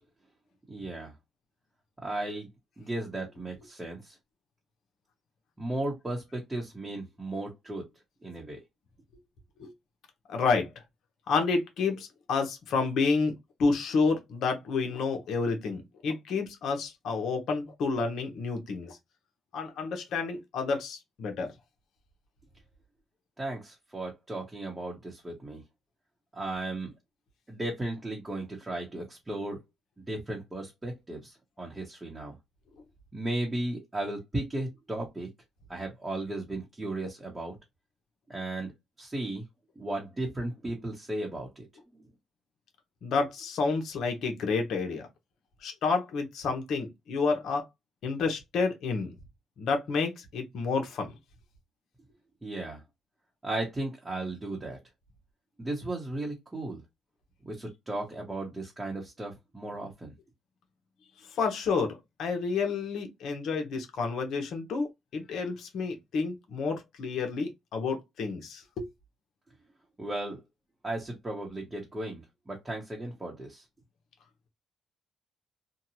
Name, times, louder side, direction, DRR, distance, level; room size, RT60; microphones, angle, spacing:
voice 1, 0.7-1.1 2.0-2.5 2.8-4.1 5.6-7.8 8.2-8.6 23.4-25.6 26.3-26.9 27.5-29.6 30.1-32.3 33.1-35.3 35.7-37.5 38.3-38.7 39.0-39.4 39.8-41.7 52.4-52.8 53.4-54.8 55.6-56.8 57.5-60.1 70.0-70.4 70.8-72.2 72.5-73.6, right 2 dB, 20° right, 1.0 m, -35 dB
voice 2, 10.3-10.7 11.3-13.3 13.6-19.0 19.5-21.5 43.0-45.1 45.6-47.6 48.0-49.1 49.6-51.1 61.4-64.9 65.1-68.9, left 4 dB, 70° left, 0.8 m, -29 dB
2.7 x 2.3 x 2.8 m
cardioid pair, 90°, 0 cm